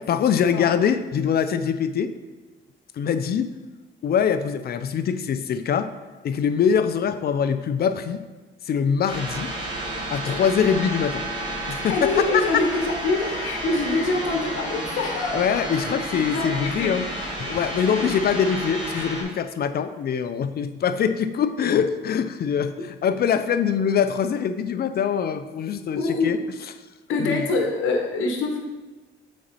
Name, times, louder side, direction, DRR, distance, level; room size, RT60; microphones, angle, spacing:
voice 1, 0.0-2.1 2.9-3.5 4.0-5.9 6.2-8.2 8.6-9.5 10.1-11.2 11.7-12.6 15.3-17.1 17.4-26.4 27.2-27.5, left 7 dB, 50° left, 10 dB, 0.5 m, -23 dB
sound 1, 9.1-19.2, right 1 dB, 20° right, 1.7 m, -31 dB
voice 2, 11.9-15.4 16.1-17.0 17.9-18.1 26.0-26.3 27.1-28.6, left 3 dB, 80° left, 3 dB, 1.0 m, -25 dB
6.3 x 4.1 x 4.1 m, 1.2 s
cardioid pair, 90°, 20 cm